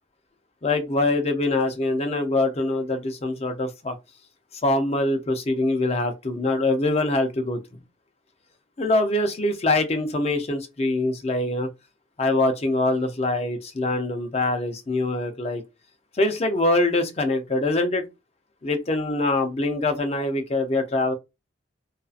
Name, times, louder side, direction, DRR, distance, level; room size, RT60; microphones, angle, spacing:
voice 1, 0.6-4.0 4.6-7.6 8.8-11.7 12.2-15.6 16.2-18.0 18.6-21.1, left 2 dB, 35° left, 0.5 m, -24 dB
2.6 x 2.4 x 2.3 m
head